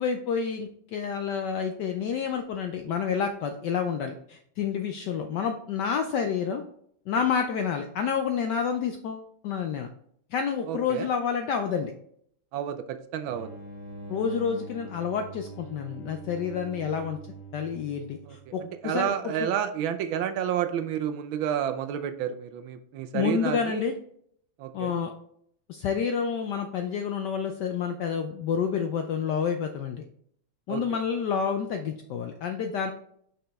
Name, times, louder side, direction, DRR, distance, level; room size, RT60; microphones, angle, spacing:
voice 1, 0.0-6.6 7.1-9.9 10.3-11.9 14.1-17.2 17.5-19.1 19.4-19.5 23.1-23.9 24.7-25.1 25.7-30.0 30.7-32.9, left 7 dB, 75° left, 6 dB, 1.0 m, -29 dB
voice 2, 10.7-11.1 12.5-13.5 18.3-18.4 18.8-23.9 24.6-25.0 30.7-31.0, right 9 dB, 75° right, 9 dB, 1.2 m, -30 dB
sound 1, 13.3-18.6, right 2 dB, 40° left, 1.9 m, -43 dB
5.8 x 5.2 x 3.4 m, 0.67 s
omnidirectional pair, 2.4 m